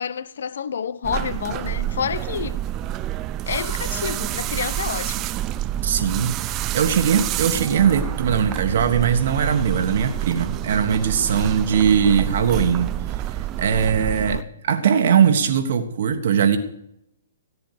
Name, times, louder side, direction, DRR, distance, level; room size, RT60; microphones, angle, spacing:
voice 1, 0.0-2.6 3.5-5.3 14.2-14.4, left 7 dB, 65° left, 0.8 m, -29 dB
sound 1, 1.0-14.4, right 13 dB, 30° right, 0.5 m, -28 dB
voice 2, 5.8-13.2 13.6-14.4 14.7-16.6, right 7 dB, 55° right, 1.4 m, -20 dB
14.0 x 9.7 x 6.5 m
figure-of-eight pair, 125°, 0 cm